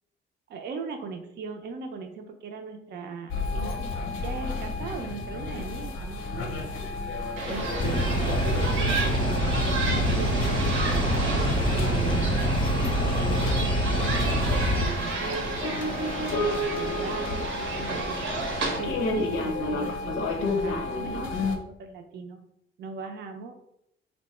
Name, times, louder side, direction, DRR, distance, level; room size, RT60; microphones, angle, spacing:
voice 1, 0.5-3.9 4.2-6.5 7.5-9.6 9.8-11.3 11.7-18.2 18.8-22.4 22.8-23.6, right 5 dB, 60° right, 4 dB, 0.5 m, -38 dB
sound 1, 3.3-21.6, left 3 dB, 85° left, 0.6 m, -32 dB
sound 2, 7.4-18.8, right 3 dB, 85° right, 0.8 m, -32 dB
sound 3, 7.8-14.9, equal, 25° left, 0.3 m, -25 dB
3.0 x 2.1 x 4.1 m, 0.77 s
cardioid pair, 90°, 20 cm